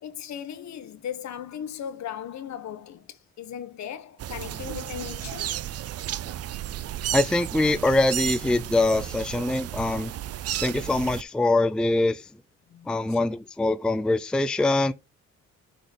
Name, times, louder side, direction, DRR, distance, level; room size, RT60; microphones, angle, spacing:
voice 1, 0.0-5.6 12.7-13.3, left 9 dB, 65° left, 1.2 m, -37 dB
sound 1, 4.2-11.2, right 12 dB, 55° right, 0.5 m, -33 dB
voice 2, 7.1-10.1 10.6-12.2 12.9-14.9, left 2 dB, 5° left, 0.4 m, -23 dB
6.1 x 4.1 x 5.1 m
cardioid pair, 90°, 30 cm